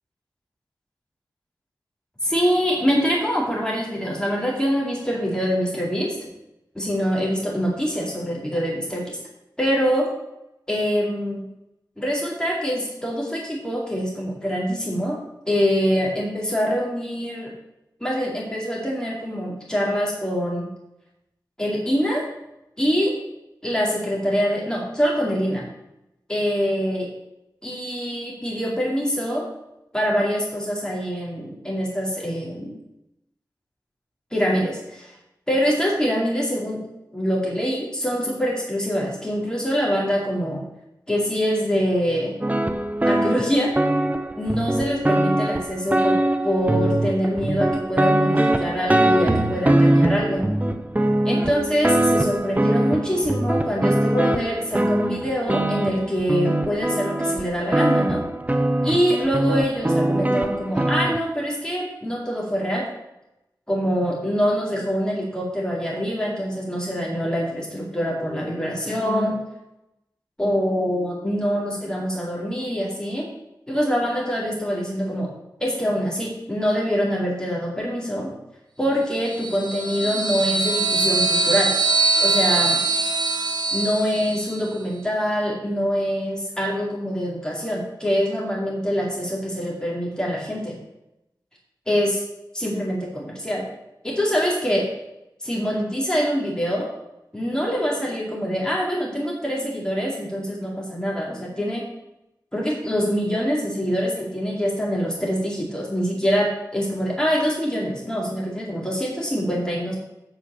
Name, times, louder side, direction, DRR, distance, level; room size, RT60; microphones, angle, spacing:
voice 1, 2.2-6.3 6.7-9.2 9.6-10.1 10.7-11.4 12.0-15.2 15.5-17.5 18.0-20.7 21.6-22.2 22.8-23.1 23.6-25.7 26.3-27.1 27.6-29.4 29.9-32.7 34.3-35.1 35.5-36.8 37.1-40.6 41.1-42.3 43.1-43.7 44.3-46.2 46.4-50.5 51.2-58.2 58.8-62.9 63.7-69.4 70.4-73.3 73.7-75.3 75.6-78.3 78.8-81.7 82.2-82.8 83.7-90.8 91.9-92.2 92.5-93.7 94.0-94.9 95.4-96.9 97.3-101.9 102.5-109.9, equal, 10° left, -4 dB, 4.2 m, -24 dB
sound 1, 42.4-61.2, right 1 dB, 20° right, 0.8 m, -22 dB
sound 2, 79.2-84.7, right 3 dB, 70° right, 1.0 m, -22 dB
8.9 x 6.7 x 7.0 m, 0.87 s
wide cardioid pair, 75°, 8 cm